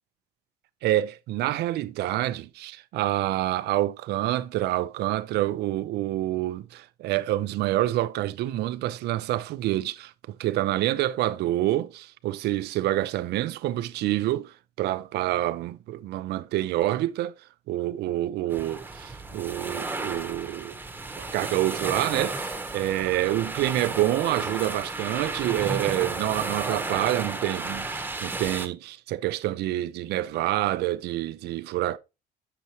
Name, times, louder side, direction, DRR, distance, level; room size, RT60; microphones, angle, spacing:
voice 1, 0.8-10.1 10.4-17.3 17.7-20.8 21.2-32.0, right 15 dB, 75° right, 0.6 m, -27 dB
sound 1, 18.5-28.7, right 3 dB, 10° right, 1.0 m, -33 dB
8.2 x 6.8 x 2.9 m
cardioid pair, 110°, 17 cm